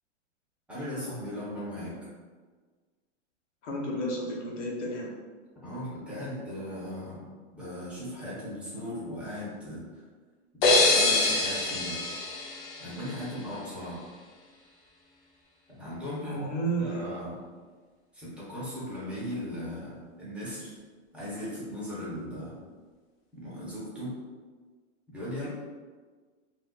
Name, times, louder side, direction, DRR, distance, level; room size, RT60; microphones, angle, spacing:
voice 1, 0.7-2.1 5.6-7.2 7.5-10.0 10.6-12.0 12.8-14.1 15.7-16.5 16.8-17.4 18.1-20.7 21.1-22.6 23.3-24.2 25.1-25.5, equal, 5° right, -9 dB, 0.7 m, -38 dB
voice 2, 3.6-5.1 16.2-17.1 25.4-25.5, right 1 dB, 75° left, -2 dB, 1.0 m, -32 dB
sound 1, 10.6-13.4, left 2 dB, 45° left, 0.6 m, -25 dB
2.5 x 2.1 x 3.7 m, 1.5 s
hypercardioid pair, 140°, 36 cm